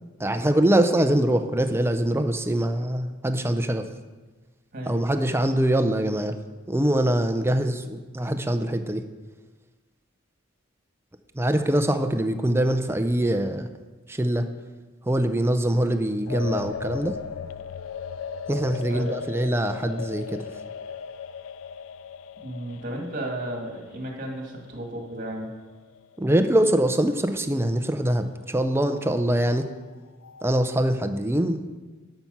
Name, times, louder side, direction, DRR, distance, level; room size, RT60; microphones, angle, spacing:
voice 1, 0.2-3.9 4.9-6.4 6.7-9.0 11.3-13.7 14.1-14.5 15.1-17.2 18.5-20.5 26.2-29.7 30.4-31.6, right 1 dB, 10° right, 7 dB, 0.5 m, -23 dB
voice 2, 4.7-5.3 18.9-19.2 22.4-25.5, right 1 dB, 45° right, 1 dB, 2.0 m, -34 dB
sound 1, 16.3-26.9 27.1-27.2 28.8-30.7, left 7 dB, 85° left, 0.4 m, -38 dB
12.0 x 5.8 x 5.5 m, 1.3 s
head